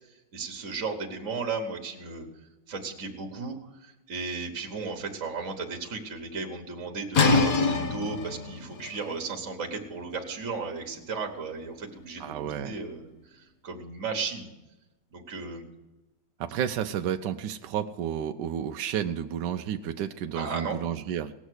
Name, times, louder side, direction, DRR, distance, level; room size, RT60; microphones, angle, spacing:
voice 1, 0.3-2.3 2.7-14.5 15.1-15.7 20.3-20.8, right 4 dB, 45° right, 2 dB, 1.5 m, -35 dB
sound 1, 7.1-12.8, left 3 dB, 50° left, 1.4 m, -28 dB
voice 2, 12.2-12.8 16.4-21.3, right 9 dB, 75° right, 6 dB, 1.1 m, -31 dB
18.5 x 7.2 x 6.4 m, 1.1 s
omnidirectional pair, 2.1 m